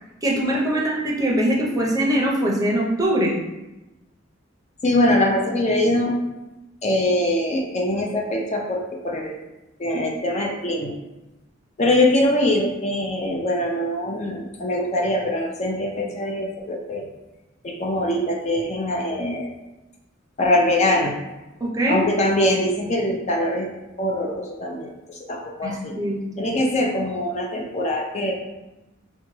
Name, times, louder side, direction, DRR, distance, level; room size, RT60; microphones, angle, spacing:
voice 1, 0.2-3.3 21.6-22.0 25.6-26.2, right 1 dB, 20° right, -3 dB, 0.6 m, -22 dB
voice 2, 4.8-6.2 6.8-9.4 9.8-10.9 11.8-17.1 17.6-19.5 20.4-21.2 21.9-23.7 24.0-26.0 26.4-28.3, left 1 dB, 35° left, 0 dB, 0.4 m, -23 dB
4.8 x 2.2 x 3.1 m, 1.0 s
head